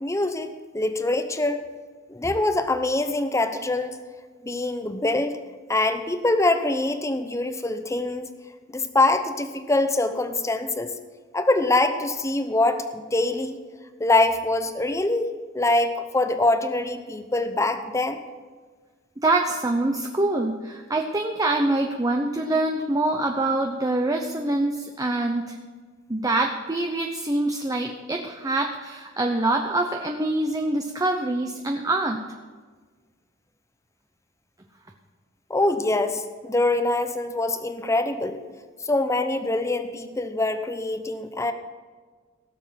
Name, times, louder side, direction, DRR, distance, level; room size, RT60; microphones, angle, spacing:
voice 1, 0.0-1.6 2.1-4.0 4.4-5.4 5.7-8.3 8.7-10.9 11.3-13.6 14.0-18.2 35.5-38.4 38.8-41.5, left 2 dB, 15° left, 9 dB, 0.7 m, -24 dB
voice 2, 19.2-25.6 26.1-32.2, right 2 dB, 20° right, 3 dB, 0.7 m, -25 dB
17.0 x 7.1 x 5.8 m, 1.4 s
head